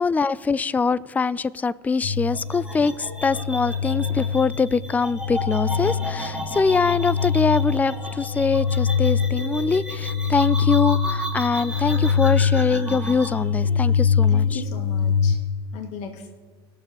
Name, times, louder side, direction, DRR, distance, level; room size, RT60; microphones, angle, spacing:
voice 1, 0.0-14.6, left 4 dB, 10° left, 18 dB, 0.3 m, -23 dB
sound 1, 2.0-15.4, left 6 dB, 75° left, 0.9 m, -24 dB
hangover nightmare, 2.3-13.3, equal, 5° right, 3.6 m, -34 dB
voice 2, 14.3-15.4 15.7-16.4, left 6 dB, 60° left, 3 dB, 1.7 m, -36 dB
20.0 x 6.7 x 3.0 m, 1.6 s
hypercardioid pair, 75°, 14 cm